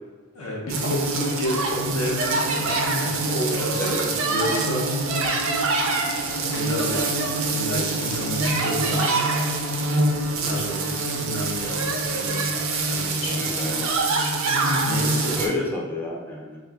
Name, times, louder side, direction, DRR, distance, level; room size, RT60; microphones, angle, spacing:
voice 1, 0.3-3.9 4.3-5.4 6.4-9.1 9.7-9.9 10.4-12.4 12.8-13.6 14.9-15.4, left 1 dB, 80° left, -2 dB, 0.7 m, -31 dB
sound 1, 0.7-15.5, right 2 dB, 70° right, 0.4 m, -24 dB
voice 2, 13.2-13.9 15.4-16.6, left 2 dB, 10° left, -3 dB, 0.4 m, -29 dB
2.6 x 2.5 x 3.4 m, 1.4 s
head